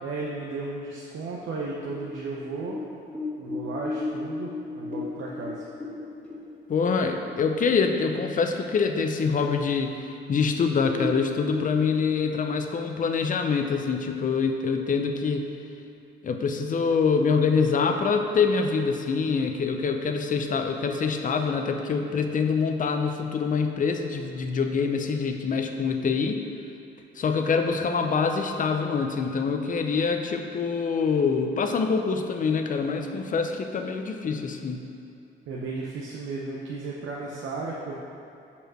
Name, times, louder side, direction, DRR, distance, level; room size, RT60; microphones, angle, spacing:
voice 1, 0.0-2.8 3.4-5.6 35.5-38.0, right 3 dB, 80° right, -3 dB, 0.8 m, -34 dB
sound 1, 1.6-7.5 7.8-7.9 8.3-8.8 9.2-9.3 10.0-10.1 10.4-10.5 10.9-12.1, left 3 dB, 5° left, 1.6 m, -35 dB
voice 2, 6.7-15.4 16.2-26.4 27.2-34.8, left 5 dB, 40° left, 5 dB, 0.6 m, -25 dB
5.2 x 4.8 x 6.1 m, 2.8 s
cardioid pair, 90°, 20 cm